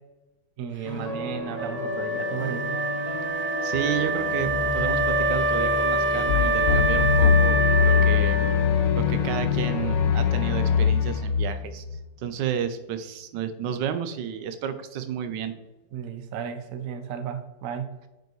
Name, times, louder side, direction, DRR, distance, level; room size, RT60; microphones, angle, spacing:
voice 1, 0.6-2.7 15.9-17.9, right 7 dB, 60° right, 8 dB, 1.0 m, -34 dB
sound 1, 0.8-10.9, left 1 dB, 40° left, 0.5 m, -34 dB
Wind instrument woodwind instrument, 1.5-9.1, right 2 dB, 15° right, 0.5 m, -26 dB
voice 2, 3.6-8.4 9.0-15.5, right 8 dB, 80° right, 10 dB, 1.2 m, -31 dB
sound 2, 6.3-12.0, left 7 dB, 90° left, 1.3 m, -22 dB
9.2 x 5.2 x 3.1 m, 1.1 s
omnidirectional pair, 1.9 m